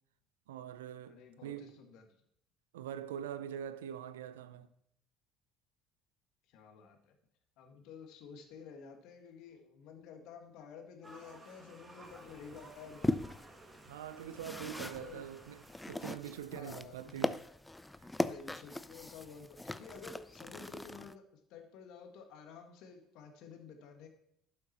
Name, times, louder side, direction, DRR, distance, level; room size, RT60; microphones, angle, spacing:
voice 1, 0.5-1.8 2.7-4.7 13.8-17.4 18.0-18.1, right 10 dB, 85° right, 0.5 m, -44 dB
voice 2, 1.0-2.0 6.5-7.2 7.6-13.2 15.0-15.3 16.5-17.2 18.2-24.1, left 6 dB, 65° left, 1.6 m, -52 dB
sound 1, 11.0-16.0, right 2 dB, 20° right, 2.0 m, -55 dB
sound 2, 12.0-21.1, left 2 dB, 10° left, 0.5 m, -40 dB
11.5 x 6.4 x 4.3 m
hypercardioid pair, 65°, 0 cm